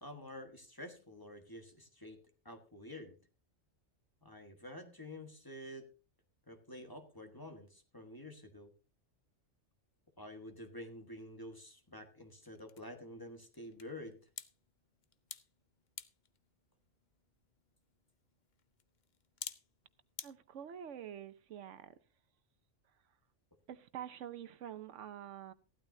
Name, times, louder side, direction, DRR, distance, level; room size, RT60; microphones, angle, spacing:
voice 1, 0.0-2.2 2.4-3.2 4.2-5.9 6.5-8.7 10.2-14.2, left 1 dB, 20° left, 1.4 m, -49 dB
sound 1, 10.9-20.3, left 7 dB, 45° left, 0.7 m, -54 dB
voice 2, 20.2-22.0 22.9-23.0 23.7-25.5, right 10 dB, 80° right, 1.1 m, -47 dB
15.5 x 12.0 x 2.7 m
omnidirectional pair, 1.2 m